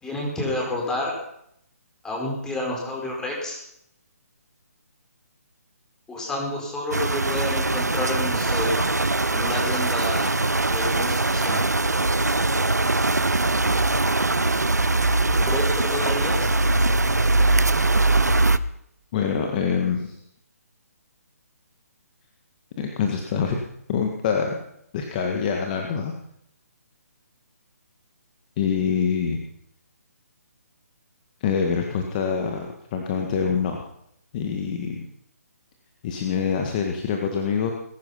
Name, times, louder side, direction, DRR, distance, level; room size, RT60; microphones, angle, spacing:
voice 1, 0.0-1.1 2.0-3.6 6.1-8.9 9.3-10.4 10.7-11.6 15.4-16.5, left 1 dB, 5° left, -1 dB, 4.6 m, -29 dB
sound 1, 6.9-18.6, right 2 dB, 90° right, 0.9 m, -21 dB
voice 2, 19.1-20.2 22.8-23.6 23.9-24.6 24.9-26.1 28.6-29.4 31.4-33.8 34.3-35.1 36.0-37.7, left 6 dB, 30° left, 3 dB, 1.9 m, -25 dB
20.5 x 11.5 x 5.8 m, 0.76 s
figure-of-eight pair, 145°, 9 cm